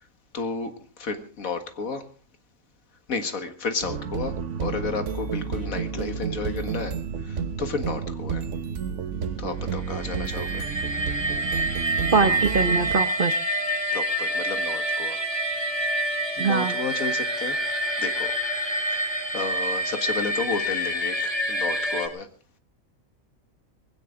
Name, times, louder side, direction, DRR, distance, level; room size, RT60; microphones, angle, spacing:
voice 1, 0.3-2.0 3.1-6.9 7.2-8.4 9.4-10.6 11.4-11.7 13.9-15.2 16.4-17.6 18.0-18.3 18.9-19.0 19.3-22.3, left 4 dB, 75° left, 8 dB, 2.1 m, -32 dB
sound 1, 3.8-12.9, right 6 dB, 60° right, 1.3 m, -31 dB
sound 2, 9.8-22.1, right 1 dB, 20° right, 1.9 m, -27 dB
voice 2, 12.1-13.4 16.4-16.8, right 4 dB, 40° right, 10 dB, 1.1 m, -22 dB
19.5 x 16.5 x 3.8 m, 0.41 s
omnidirectional pair, 1.5 m